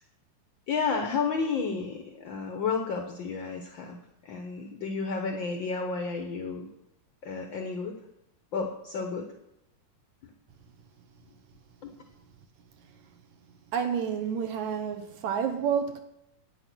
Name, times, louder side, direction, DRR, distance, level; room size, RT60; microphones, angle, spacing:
voice 1, 0.7-4.0 4.2-6.7 7.2-7.9 8.5-9.3 10.2-10.3 11.8-11.9, left 5 dB, 75° left, 1.1 m, -31 dB
voice 2, 13.7-16.0, right 7 dB, 70° right, 2.2 m, -29 dB
10.5 x 9.3 x 6.1 m
omnidirectional pair, 3.7 m